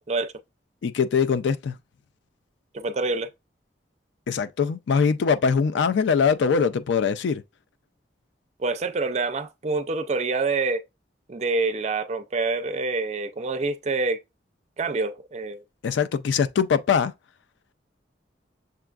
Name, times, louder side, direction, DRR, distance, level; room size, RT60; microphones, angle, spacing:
voice 1, 0.8-1.7 4.3-7.4 15.8-17.1, left 6 dB, 75° left, 0.3 m, -22 dB
voice 2, 2.7-3.3 8.6-10.8 11.3-14.2 14.8-15.6, right 3 dB, 35° right, 0.4 m, -26 dB
6.7 x 2.4 x 2.3 m
head